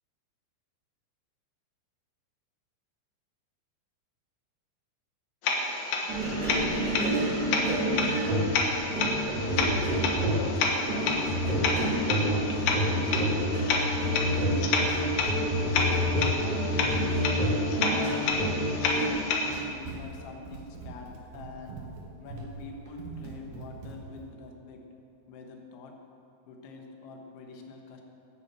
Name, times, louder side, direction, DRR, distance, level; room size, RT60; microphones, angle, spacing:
sound 1, 5.4-19.6, left 3 dB, 65° left, 2.4 m, -30 dB
sound 2, 6.1-19.1, equal, 30° right, 2.7 m, -28 dB
voice 1, 9.4-13.7 14.2-17.1 17.7-18.3 19.3-21.8 22.2-24.8 25.3-25.9 26.5-28.0, left 3 dB, 90° left, 2 dB, 3.8 m, -44 dB
Run, 19.1-24.3, right 3 dB, 75° right, 3.6 m, -43 dB
11.5 x 9.8 x 7.5 m, 2.9 s
omnidirectional pair, 5.2 m